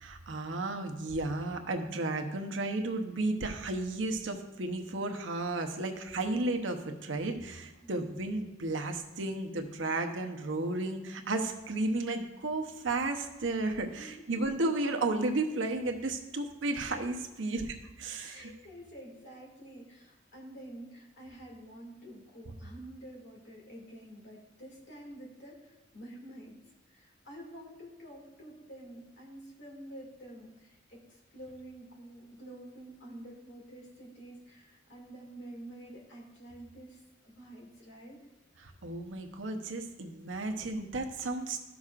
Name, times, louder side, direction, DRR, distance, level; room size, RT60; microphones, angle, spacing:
voice 1, 0.0-18.5 38.6-41.7, right 2 dB, 85° right, 4 dB, 0.8 m, -33 dB
voice 2, 18.2-26.6 26.9-38.2, right 1 dB, 65° left, -2 dB, 2.2 m, -49 dB
13.0 x 6.1 x 2.5 m, 1.0 s
head